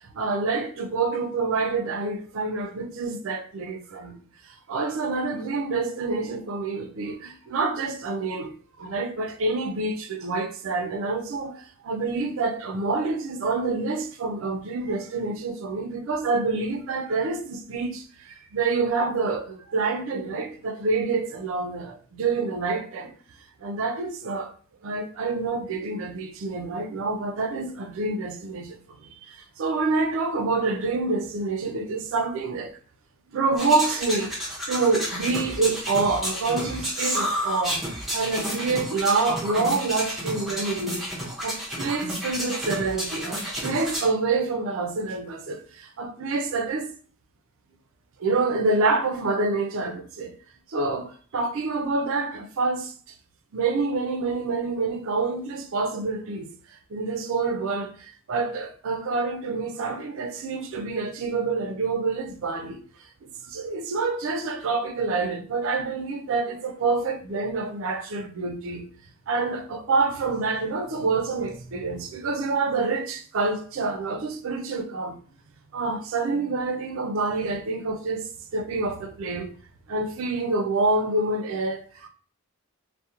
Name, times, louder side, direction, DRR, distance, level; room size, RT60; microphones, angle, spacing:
voice 1, 0.1-4.2 4.4-23.1 23.6-24.5 24.8-32.8 33.3-37.8 38.1-46.9 48.2-50.3 50.7-53.1 53.5-56.5 56.9-62.8 63.2-68.9 69.3-75.2 75.7-79.5 79.9-82.1, right 3 dB, 65° right, 0.4 m, -27 dB
sound 1, 33.6-44.1, equal, ahead, 0.5 m, -31 dB
2.8 x 2.1 x 2.4 m
head